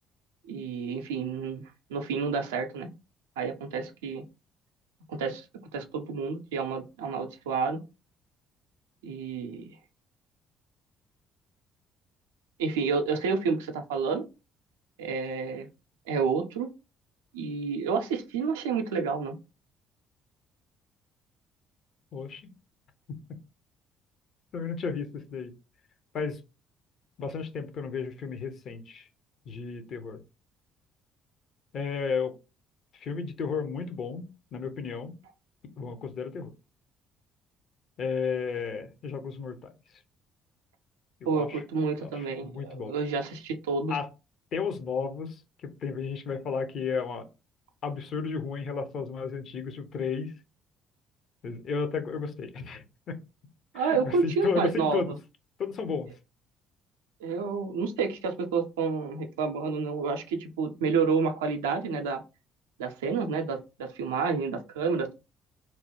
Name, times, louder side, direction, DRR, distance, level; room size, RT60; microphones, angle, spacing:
voice 1, 0.5-1.6 1.9-2.9 3.4-4.2 5.1-5.5 5.7-7.8 9.0-9.7 12.6-14.3 15.0-15.7 16.1-16.7 17.3-19.4 41.3-44.0 53.7-55.2 57.2-62.2 62.8-65.1, right 5 dB, 75° right, 0.4 m, -29 dB
voice 2, 22.1-22.5 24.5-25.5 26.1-26.4 27.2-29.1 29.5-30.2 31.7-32.3 32.9-35.2 35.8-36.5 38.0-39.6 41.2-41.6 42.0-42.9 43.9-44.1 44.5-47.2 47.8-50.3 51.4-53.2 53.7-55.1 55.6-56.1, left 5 dB, 55° left, 0.6 m, -33 dB
3.0 x 2.1 x 2.9 m
figure-of-eight pair, 50°, 0 cm